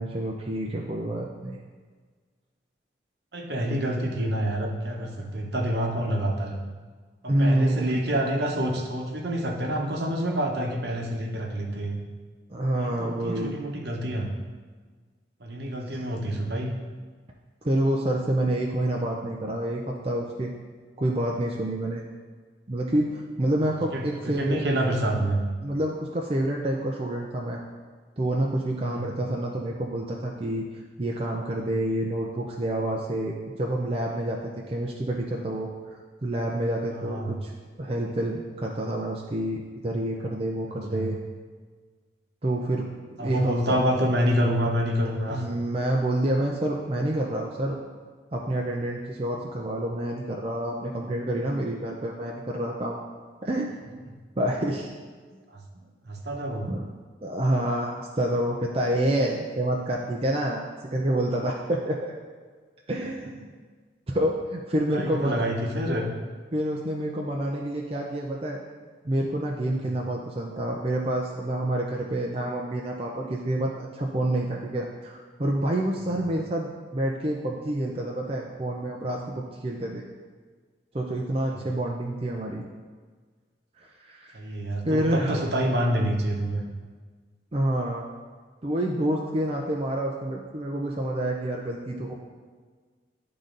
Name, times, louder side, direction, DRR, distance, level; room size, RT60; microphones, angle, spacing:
voice 1, 0.0-1.6 3.7-3.8 7.3-8.0 12.5-13.5 17.6-20.5 21.0-22.0 22.7-24.6 25.6-27.6 28.2-30.7 31.0-34.4 34.7-37.5 37.8-41.2 42.4-42.9 43.2-43.8 45.3-47.8 48.3-53.0 53.4-53.7 54.4-54.9 56.7-56.8 57.2-60.6 60.9-62.1 62.9-63.5 64.1-65.4 66.5-68.6 69.0-80.0 80.9-82.6 83.8-84.4 84.8-85.4 87.5-88.1 88.6-92.1, right 1 dB, 30° right, -2 dB, 0.5 m, -28 dB
voice 2, 3.3-6.6 7.2-12.0 12.7-14.3 15.4-16.7 23.6-25.4 28.8-29.2 36.9-37.4 40.7-41.1 43.2-45.6 55.5-55.6 56.0-56.7 64.9-66.1 69.7-70.0 81.4-81.6 84.3-86.6, equal, 60° right, 1 dB, 1.0 m, -28 dB
11.5 x 3.9 x 3.9 m, 1.5 s
head